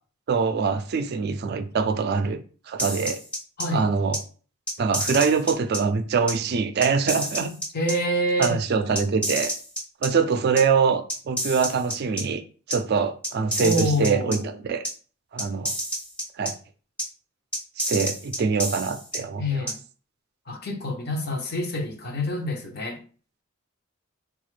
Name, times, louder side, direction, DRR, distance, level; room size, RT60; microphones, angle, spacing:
voice 1, 0.3-3.2 3.7-4.2 4.8-7.5 8.4-9.5 10.0-12.4 12.7-14.8 15.3-15.7 16.4-16.5 17.8-19.4, right 5 dB, 50° right, 0.4 m, -24 dB
sound 1, 2.8-3.6 4.1-4.2 4.7-5.8 6.3-6.4 6.8-7.9 8.4-8.5 8.9-10.1 10.6-10.7 11.1-12.2 12.7-12.8 13.2-14.4 14.8-14.9 15.4-16.5 17.0-17.1 17.5-19.2 19.7-19.8, equal, 5° left, 0.6 m, -29 dB
voice 2, 3.6-3.9 7.7-8.6 13.6-14.6 19.4-19.8 20.5-23.0, equal, 50° left, 0.7 m, -27 dB
4.0 x 2.3 x 3.1 m
head